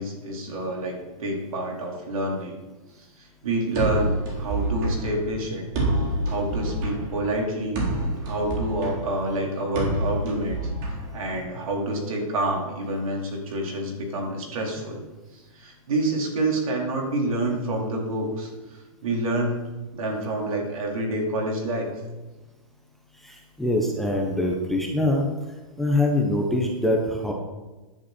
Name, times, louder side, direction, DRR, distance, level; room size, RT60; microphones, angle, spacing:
voice 1, 0.0-2.6 3.0-5.7 6.2-7.8 8.2-10.7 11.1-15.0 15.3-19.6 19.9-22.0, right 1 dB, 70° right, -1 dB, 4.4 m, -28 dB
sound 1, 3.7-11.7, right 1 dB, 35° right, 3.9 m, -28 dB
voice 2, 23.2-25.2 25.8-27.3, left 1 dB, ahead, -1 dB, 1.0 m, -24 dB
15.0 x 10.5 x 4.5 m, 1.2 s
hypercardioid pair, 170°, 18 cm